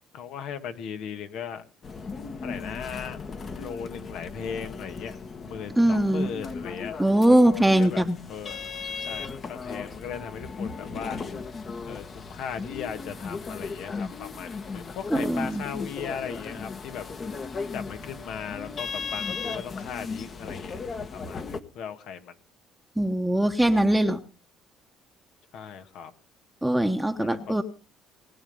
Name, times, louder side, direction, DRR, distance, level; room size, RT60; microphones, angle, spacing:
voice 1, 0.1-1.6 2.4-3.2 3.6-5.2 5.4-11.2 11.9-17.1 17.7-20.8 21.1-22.4 25.5-26.1 27.2-27.6, left 7 dB, 70° left, 9 dB, 1.9 m, -38 dB
sound 1, 1.8-21.6, left 4 dB, 35° left, 1.4 m, -37 dB
voice 2, 5.8-6.3 7.0-8.2 15.1-15.6 23.0-24.2 26.6-27.6, right 1 dB, 5° right, 6 dB, 1.1 m, -21 dB
20.0 x 9.1 x 5.4 m, 0.36 s
cardioid pair, 110°, 0 cm